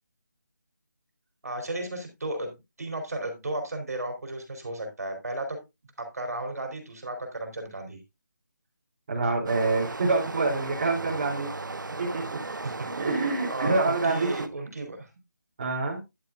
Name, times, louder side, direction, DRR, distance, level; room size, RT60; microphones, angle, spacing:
voice 1, 1.4-5.6 6.0-8.0 12.6-13.1 13.5-15.1, right 1 dB, 55° right, 5 dB, 3.4 m, -34 dB
voice 2, 9.1-11.5 12.0-12.4 12.9-14.3 15.6-16.0, right 3 dB, 30° right, -4 dB, 3.0 m, -26 dB
Stream, 9.5-14.5, right 3 dB, 85° right, 1.2 m, -36 dB
10.5 x 9.5 x 2.4 m, 0.23 s
figure-of-eight pair, 175°, 10 cm